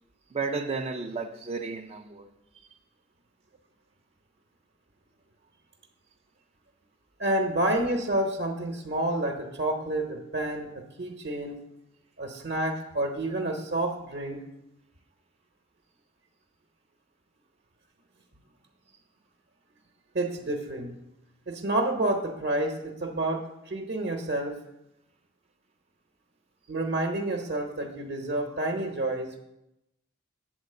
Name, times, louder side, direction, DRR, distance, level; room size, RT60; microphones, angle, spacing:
voice 1, 0.3-2.3, right 4 dB, 30° right, 0.4 m, -33 dB
voice 2, 7.2-11.6 12.2-14.4 20.1-20.9 21.5-24.6 26.7-29.4, right 1 dB, 55° right, 0.9 m, -29 dB
7.9 x 4.2 x 6.6 m
head